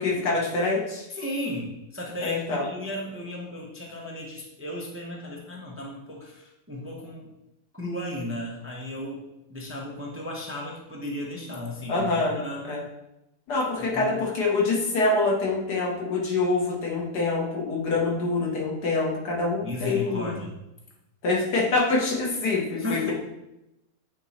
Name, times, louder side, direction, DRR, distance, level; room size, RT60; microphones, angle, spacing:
voice 1, 0.0-1.1 2.2-2.6 11.9-12.4 12.6-12.8 13.5-20.3 21.2-23.1, left 3 dB, 80° left, -2 dB, 1.9 m, -25 dB
voice 2, 1.1-7.3 7.7-12.7 13.9-14.2 19.6-20.6 22.8-23.1, left 1 dB, 10° right, -2 dB, 0.7 m, -35 dB
8.9 x 3.1 x 4.1 m, 0.92 s
omnidirectional pair, 1.7 m